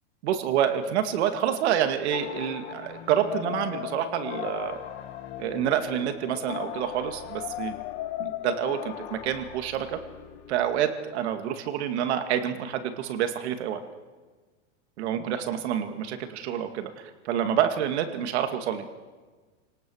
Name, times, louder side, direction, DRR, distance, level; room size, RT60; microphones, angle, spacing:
voice 1, 0.2-4.8 5.4-7.7 8.2-10.0 10.5-13.8 15.0-16.9 17.2-18.9, right 9 dB, 65° right, 7 dB, 2.3 m, -28 dB
sound 1, 2.1-10.8, left 9 dB, 60° left, 2.6 m, -41 dB
sound 2, 3.2-8.9, left 16 dB, 40° left, 0.9 m, -37 dB
27.5 x 18.5 x 6.4 m, 1.4 s
supercardioid pair, 160°, 36 cm